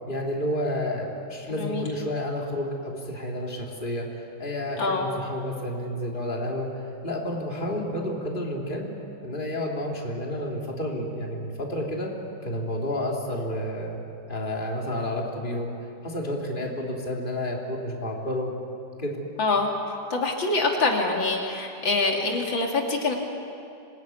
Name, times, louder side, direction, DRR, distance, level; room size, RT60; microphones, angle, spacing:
voice 1, 0.1-6.7 7.0-8.9 9.2-12.1 12.4-15.7 16.0-18.6 19.0-19.2, left 1 dB, 25° left, -1 dB, 3.3 m, -30 dB
voice 2, 19.4-19.7 20.1-23.2, left 3 dB, 80° left, 1 dB, 3.3 m, -25 dB
26.5 x 20.5 x 9.6 m, 2.8 s
omnidirectional pair, 2.1 m